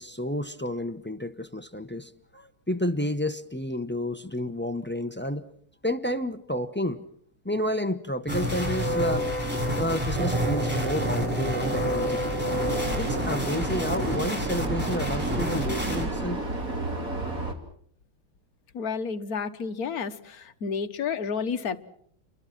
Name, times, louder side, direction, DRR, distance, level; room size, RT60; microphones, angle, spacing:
voice 1, 0.0-5.4 5.8-7.0 7.4-9.2 9.8-12.3 12.9-16.4, left 1 dB, 15° left, 0.4 m, -30 dB
sound 1, 8.3-16.1, equal, 5° right, 6.5 m, -29 dB
sound 2, 10.1-16.2, right 6 dB, 60° right, 1.9 m, -36 dB
Vehicle, 12.6-17.5, right 2 dB, 40° right, 3.4 m, -32 dB
voice 2, 18.7-21.8, left 6 dB, 50° left, 1.5 m, -31 dB
29.5 x 23.0 x 6.1 m
omnidirectional pair, 2.3 m